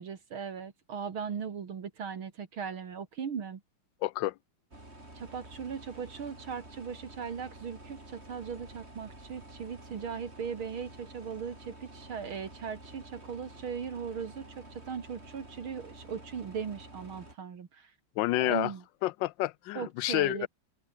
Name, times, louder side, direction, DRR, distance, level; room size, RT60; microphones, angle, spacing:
voice 1, 0.0-3.6 5.1-17.9 18.3-18.8 19.7-20.5, right 6 dB, 70° right, 2.9 m, -38 dB
voice 2, 4.0-4.3 18.2-18.7 19.0-20.5, left 17 dB, 70° left, 1.2 m, -29 dB
sound 1, 4.7-17.4, right 1 dB, 30° right, 6.6 m, -50 dB
omnidirectional pair, 2.4 m